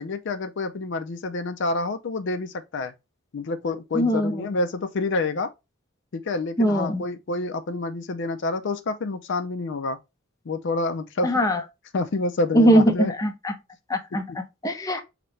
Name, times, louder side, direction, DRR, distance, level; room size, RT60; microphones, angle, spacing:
voice 1, 0.0-2.9 3.3-5.5 6.1-10.0 10.5-11.4 11.9-13.1 14.1-14.4, left 3 dB, 60° left, 0.5 m, -28 dB
voice 2, 3.9-4.4 6.6-7.0 11.2-11.6 12.5-13.5 13.9-15.0, equal, 15° left, 0.6 m, -21 dB
5.4 x 2.9 x 3.1 m
head